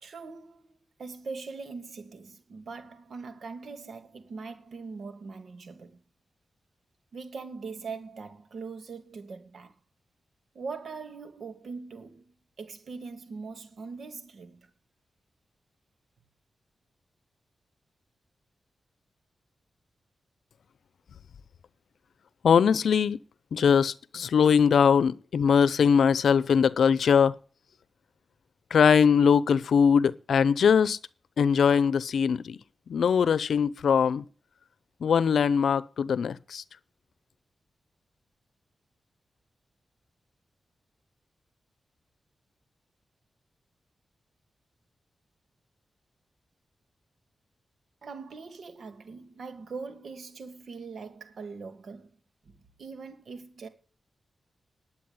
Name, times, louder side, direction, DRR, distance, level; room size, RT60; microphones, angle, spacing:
voice 1, 0.0-0.6 1.0-6.0 7.1-9.7 10.5-14.7 48.0-52.2 52.4-53.7, right 4 dB, 70° right, 2.2 m, -41 dB
voice 2, 22.4-23.2 23.5-27.3 28.7-31.0 31.4-32.6 32.9-34.2 35.0-36.6, left 7 dB, 85° left, 0.6 m, -21 dB
10.5 x 8.4 x 9.5 m
cardioid pair, 65°, 0 cm